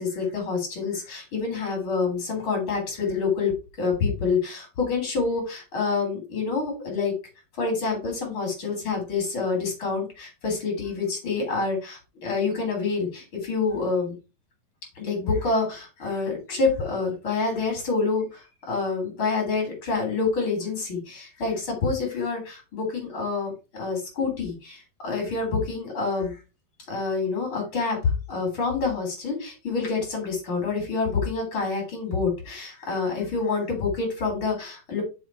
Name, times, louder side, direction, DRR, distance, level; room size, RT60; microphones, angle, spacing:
voice 1, 0.0-3.5 3.8-7.1 7.6-14.1 15.0-26.4 26.9-35.0, left 4 dB, 35° left, 2 dB, 4.2 m, -27 dB
7.1 x 6.3 x 4.5 m, 0.30 s
omnidirectional pair, 4.3 m